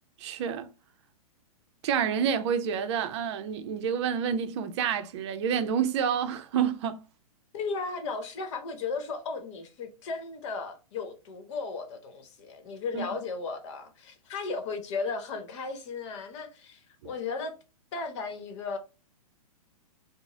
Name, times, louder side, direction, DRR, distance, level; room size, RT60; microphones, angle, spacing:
voice 1, 0.2-0.7 1.8-7.0 12.9-13.0, right 8 dB, 50° right, 0.6 m, -28 dB
voice 2, 7.5-17.5 17.9-18.8, left 4 dB, 50° left, 1.0 m, -35 dB
3.9 x 2.1 x 3.6 m
hypercardioid pair, 115°, 19 cm